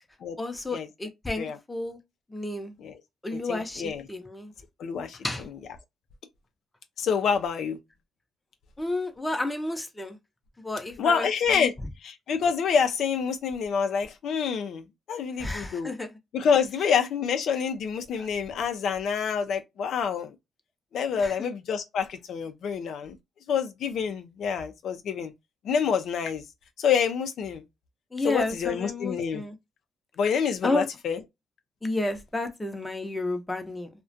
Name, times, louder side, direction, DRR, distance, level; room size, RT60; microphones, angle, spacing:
voice 1, 0.4-2.0 2.3-2.7 3.2-4.5 5.2-5.4 8.8-10.2 10.6-11.3 11.5-11.7 15.4-16.1 18.2-18.3 21.2-21.5 28.1-29.5 30.6-30.9 31.8-33.9, left 2 dB, 15° left, 0.6 m, -31 dB
voice 2, 3.5-4.0 4.8-5.2 7.0-7.8 11.0-11.7 12.0-15.9 16.3-20.3 20.9-23.1 23.5-25.3 25.6-26.4 26.8-27.6 28.2-29.4 30.2-31.2, left 6 dB, 70° left, 0.4 m, -27 dB
2.4 x 2.1 x 2.4 m
cardioid pair, 90°, 0 cm